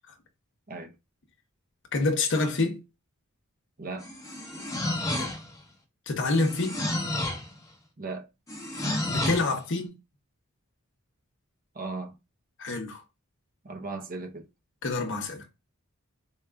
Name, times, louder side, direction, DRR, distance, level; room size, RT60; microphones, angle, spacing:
voice 1, 1.9-2.8 5.1-5.3 6.1-6.8 9.1-9.9 12.6-13.0 14.8-15.5, left 3 dB, 60° left, 0.8 m, -27 dB
voice 2, 3.8-4.1 8.0-8.3 11.7-12.1 13.6-14.5, right 3 dB, 40° right, 0.7 m, -36 dB
sound 1, 4.0-5.6 6.3-7.5 8.5-9.5, left 1 dB, 15° left, 0.9 m, -31 dB
4.6 x 2.4 x 3.3 m
head